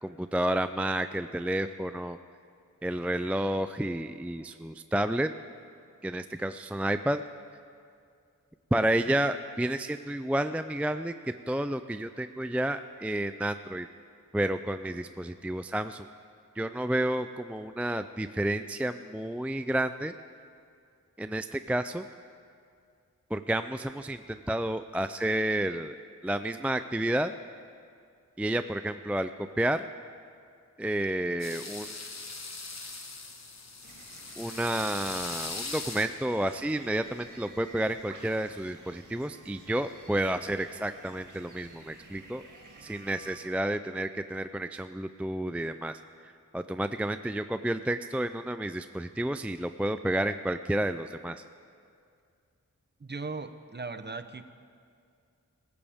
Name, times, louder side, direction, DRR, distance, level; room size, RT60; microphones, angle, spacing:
voice 1, 0.0-2.2 2.8-5.3 6.0-7.2 8.7-11.1 11.5-13.9 14.3-16.1 16.6-20.1 21.2-22.1 23.3-26.0 26.2-27.3 28.4-29.3 29.6-29.9 30.8-32.1 34.4-42.4 42.8-51.4, right 1 dB, 5° right, 10 dB, 0.3 m, -30 dB
sound 1, 31.4-36.5, left 3 dB, 55° left, 1.4 m, -40 dB
sound 2, 33.8-43.4, right 2 dB, 70° right, 1.8 m, -52 dB
voice 2, 53.0-54.5, right 3 dB, 35° right, 10 dB, 0.8 m, -38 dB
25.5 x 15.5 x 3.6 m, 2.3 s
wide cardioid pair, 80°, 32 cm